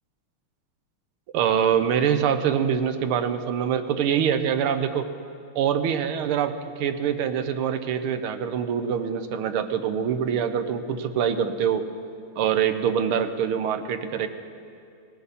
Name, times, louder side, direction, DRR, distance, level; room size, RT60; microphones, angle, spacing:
voice 1, 1.3-5.1 5.5-11.8 12.4-14.3, right 8 dB, 90° right, 8 dB, 1.7 m, -24 dB
18.5 x 17.0 x 4.2 m, 2.4 s
omnidirectional pair, 2.3 m